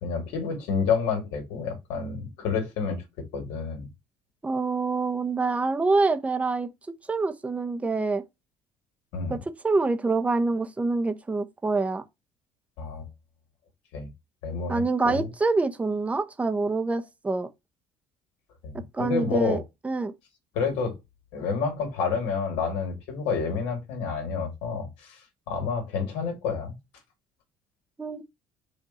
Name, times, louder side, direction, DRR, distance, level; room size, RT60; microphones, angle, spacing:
voice 1, 0.0-3.0 3.3-3.9 9.1-9.4 12.8-13.1 13.9-14.1 14.4-15.3 18.6-19.6 20.5-20.9 21.3-25.2 25.5-26.7, left 5 dB, 80° left, 2.2 m, -29 dB
voice 2, 4.4-6.7 7.1-8.2 9.3-9.4 9.6-12.0 14.7-17.5 18.9-19.6 19.8-20.1 28.0-28.2, right 3 dB, 15° right, 0.7 m, -26 dB
4.9 x 2.6 x 4.1 m
cardioid pair, 115°, 10 cm